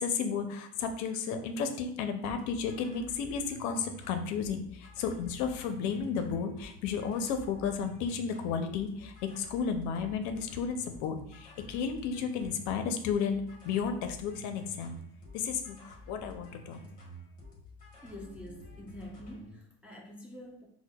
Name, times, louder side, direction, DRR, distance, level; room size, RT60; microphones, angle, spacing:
voice 1, 0.0-15.0 15.3-16.8, left 6 dB, 65° left, 7 dB, 0.5 m, -33 dB
sound 1, 2.2-19.6, equal, 25° left, 1.0 m, -50 dB
voice 2, 18.0-20.7, left 1 dB, 5° right, -2 dB, 0.3 m, -46 dB
4.3 x 2.0 x 2.2 m, 0.71 s
cardioid pair, 125°, 32 cm